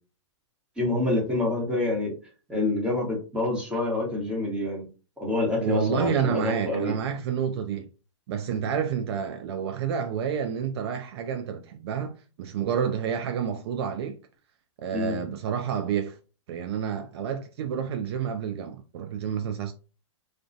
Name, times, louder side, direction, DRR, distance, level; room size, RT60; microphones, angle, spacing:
voice 1, 0.8-2.1 2.5-4.9 5.2-6.9 14.9-15.2, left 2 dB, 5° right, 1.0 m, -27 dB
voice 2, 5.6-7.9 8.3-14.2 14.8-16.2 16.5-19.7, right 7 dB, 55° right, 0.4 m, -29 dB
2.3 x 2.2 x 2.5 m
hypercardioid pair, 120°, 16 cm